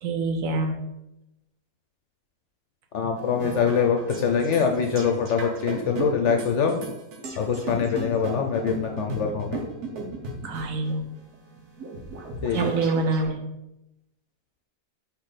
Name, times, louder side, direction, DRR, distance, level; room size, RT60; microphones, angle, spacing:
voice 1, 0.0-0.8 10.4-11.1 12.5-13.4, right 3 dB, 65° right, 4 dB, 1.1 m, -26 dB
voice 2, 2.9-6.8 7.4-9.6 12.4-12.7, left 6 dB, 60° left, 4 dB, 0.8 m, -24 dB
sound 1, 3.1-13.3, right 3 dB, 85° right, 1.5 m, -36 dB
5.9 x 3.2 x 4.9 m, 0.88 s
omnidirectional pair, 1.6 m